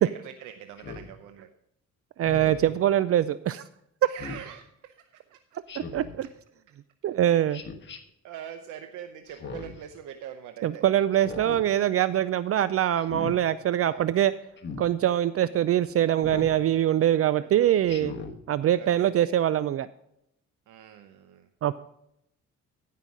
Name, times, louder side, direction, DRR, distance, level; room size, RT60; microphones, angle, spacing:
voice 1, 0.0-1.5 4.0-5.0 5.3-5.6 7.5-7.6 8.2-10.8 13.8-14.1 15.4-15.5 17.4-17.9 18.7-19.3 20.7-21.5, right 9 dB, 85° right, 8 dB, 0.8 m, -44 dB
Speech synthesizer, 0.8-1.1 2.2-2.7 4.2-4.5 5.7-6.2 7.5-8.0 9.3-9.8 11.1-11.6 13.0-13.4 14.6-14.9 16.2-16.6 17.9-18.4, left 5 dB, 35° left, 1.4 m, -39 dB
voice 2, 2.2-3.6 5.9-6.3 7.0-7.6 10.6-14.3 14.8-18.1 18.5-19.9 21.6-21.8, right 11 dB, 50° right, 15 dB, 0.4 m, -23 dB
13.0 x 5.7 x 4.8 m, 0.78 s
cardioid pair, 90°, 30 cm